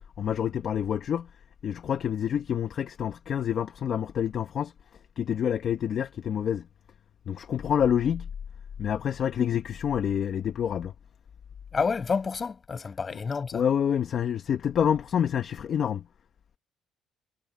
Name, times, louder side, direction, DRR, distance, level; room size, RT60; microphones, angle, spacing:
voice 1, 0.2-1.3 1.6-6.7 7.3-8.3 8.8-10.9 13.5-16.1, left 8 dB, 40° left, 1.2 m, -27 dB
voice 2, 11.7-13.6, left 5 dB, 25° left, 7.2 m, -29 dB
cardioid pair, 155°, 0 cm